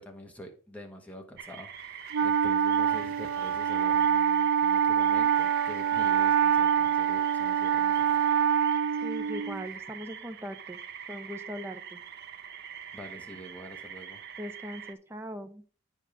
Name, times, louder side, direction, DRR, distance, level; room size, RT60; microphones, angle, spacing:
voice 1, 0.0-8.3 12.9-14.2, equal, 5° left, 2 dB, 1.3 m, -46 dB
sound 1, 1.4-14.9, right 8 dB, 50° right, 0.8 m, -44 dB
Wind instrument woodwind instrument, 2.1-9.7, right 8 dB, 90° right, 0.4 m, -25 dB
voice 2, 9.0-10.8 11.1-12.0 14.4-15.6, equal, 10° right, 7 dB, 0.7 m, -40 dB
9.1 x 5.5 x 4.9 m, 0.40 s
head